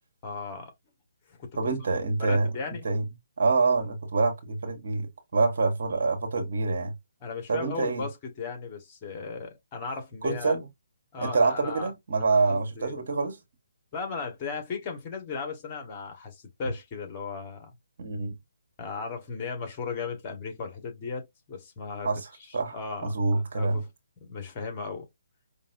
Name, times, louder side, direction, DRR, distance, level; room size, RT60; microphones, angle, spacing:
voice 1, 0.2-0.7 1.3-1.4 2.2-2.8 7.2-10.5 11.1-11.9 12.2-13.0 13.9-17.7 18.8-22.1 22.7-23.1 23.5-23.9 24.3-25.1, left 4 dB, 30° left, 1.5 m, -36 dB
voice 2, 1.5-2.5 2.8-3.1 3.4-6.9 7.5-8.0 10.2-10.7 11.2-13.4 18.0-18.3 22.0-22.3 22.5-22.8 23.0-23.8, right 3 dB, 55° right, 1.3 m, -26 dB
5.2 x 2.6 x 2.6 m
figure-of-eight pair, 140°, 0 cm